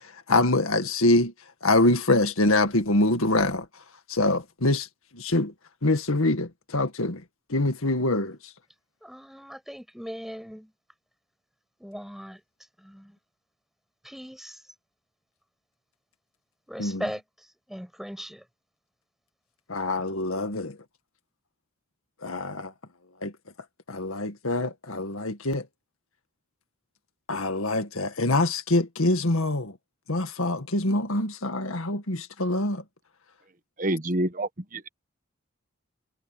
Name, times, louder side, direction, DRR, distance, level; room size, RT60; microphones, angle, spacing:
voice 1, 0.3-1.3 1.6-3.7 4.1-4.9 5.1-5.5 5.8-7.2 7.5-8.4 16.8-17.0 19.7-20.8 22.2-22.7 23.2-23.3 23.9-25.6 27.3-29.7 30.1-32.8, left 2 dB, 80° left, 2.0 m, -24 dB
voice 2, 9.0-10.7 11.8-12.4 12.8-13.2 14.0-14.6 16.7-18.4, equal, ahead, 6.7 m, -39 dB
voice 3, 33.8-34.9, right 1 dB, 40° right, 1.2 m, -28 dB
head